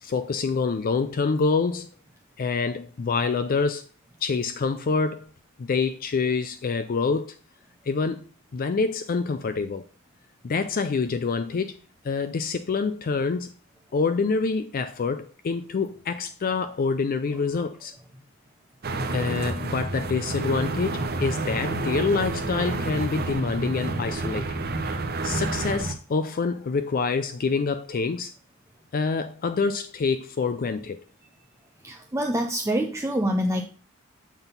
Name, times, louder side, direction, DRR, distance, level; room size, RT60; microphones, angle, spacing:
voice 1, 0.0-1.9 2.4-3.8 4.2-5.3 5.6-7.3 7.9-8.2 8.5-9.8 10.4-11.8 12.0-13.5 13.9-17.9 19.1-24.6 25.2-28.3 28.9-31.0, left 4 dB, 40° left, 0.4 m, -26 dB
sound 1, 18.8-25.9, right 2 dB, 45° right, 0.8 m, -29 dB
voice 2, 31.8-33.6, equal, 15° right, 0.5 m, -26 dB
7.0 x 4.0 x 5.4 m
head